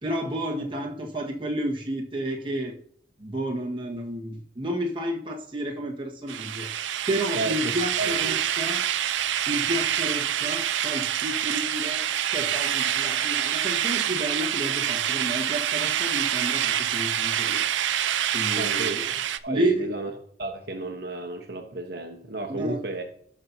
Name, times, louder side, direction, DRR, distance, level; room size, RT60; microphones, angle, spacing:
voice 1, 0.0-2.7 3.2-6.7 7.1-8.8 9.5-12.0 12.3-17.6 18.3-19.0 19.5-19.9 22.5-22.8, right 1 dB, 25° right, 1.6 m, -31 dB
sound 1, 6.3-19.4, right 10 dB, 85° right, 0.5 m, -26 dB
voice 2, 8.0-8.4 18.6-20.1 20.4-23.0, right 3 dB, 55° right, 1.0 m, -33 dB
17.5 x 6.0 x 2.8 m
head